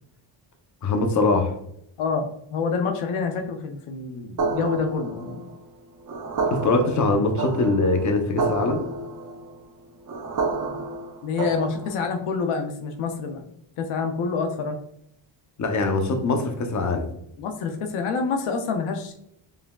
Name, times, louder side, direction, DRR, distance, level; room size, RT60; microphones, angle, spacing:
voice 1, 0.8-1.5 6.5-8.8 15.6-17.1, left 3 dB, 35° left, 5 dB, 0.7 m, -22 dB
voice 2, 2.0-5.5 10.7-10.9 11.2-13.5 13.8-14.8 17.4-19.1, left 5 dB, 85° left, 5 dB, 0.7 m, -27 dB
sound 1, 4.4-12.2, right 4 dB, 40° right, 0.8 m, -30 dB
4.7 x 3.3 x 2.3 m, 0.74 s
cardioid pair, 95°, 49 cm